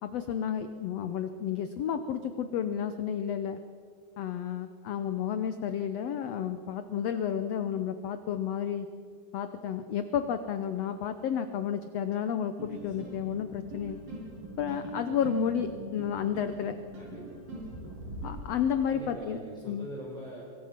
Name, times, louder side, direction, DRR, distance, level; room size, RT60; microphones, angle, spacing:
voice 1, 0.0-3.6 4.2-8.9 9.3-14.1 14.6-16.8 18.2-19.4 19.7-19.9, left 8 dB, 80° left, 10 dB, 1.4 m, -31 dB
sound 1, 12.6-18.3, right 1 dB, 80° right, 7.7 m, -41 dB
voice 2, 16.9-17.4 18.9-20.4, right 1 dB, ahead, -5 dB, 4.1 m, -42 dB
24.0 x 23.5 x 5.9 m, 2.3 s
omnidirectional pair, 4.0 m